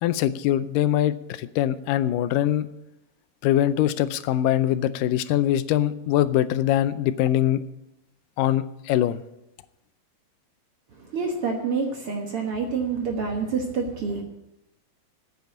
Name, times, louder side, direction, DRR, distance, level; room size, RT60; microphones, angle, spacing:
voice 1, 0.0-2.7 3.4-7.6 8.4-9.2, left 12 dB, 85° left, 13 dB, 2.3 m, -23 dB
voice 2, 10.9-14.2, right 5 dB, 55° right, 2 dB, 1.7 m, -27 dB
9.6 x 8.6 x 8.4 m, 0.91 s
omnidirectional pair, 3.8 m